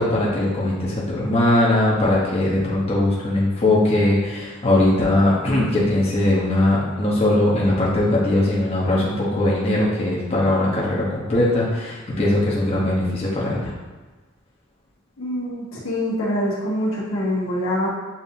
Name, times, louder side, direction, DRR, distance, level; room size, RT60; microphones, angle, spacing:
voice 1, 0.0-13.7, left 1 dB, 30° left, -6 dB, 0.9 m, -20 dB
voice 2, 15.2-17.9, left 1 dB, 80° left, -6 dB, 1.4 m, -24 dB
7.2 x 2.7 x 2.7 m, 1.3 s
head